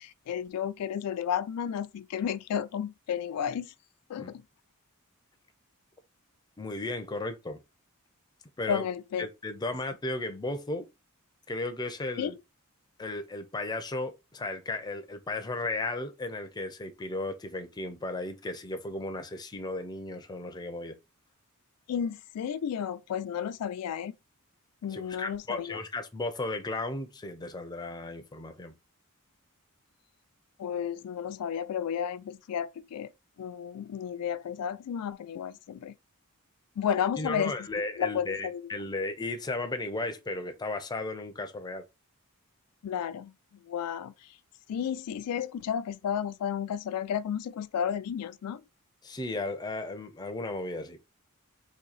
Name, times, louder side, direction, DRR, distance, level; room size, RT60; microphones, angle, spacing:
voice 1, 0.0-3.7 4.1-4.4 8.7-9.3 12.2-12.4 21.9-24.1 24.8-25.8 30.6-33.1 33.4-36.0 36.8-37.5 38.0-38.7 42.8-43.3 43.6-44.3 44.7-48.6, left 8 dB, 80° left, 0.3 m, -32 dB
voice 2, 6.6-7.6 8.6-8.9 9.2-10.9 11.5-12.4 13.0-21.0 24.9-28.8 37.2-41.9 49.0-51.0, left 2 dB, 20° left, 0.5 m, -35 dB
2.9 x 2.7 x 4.0 m
head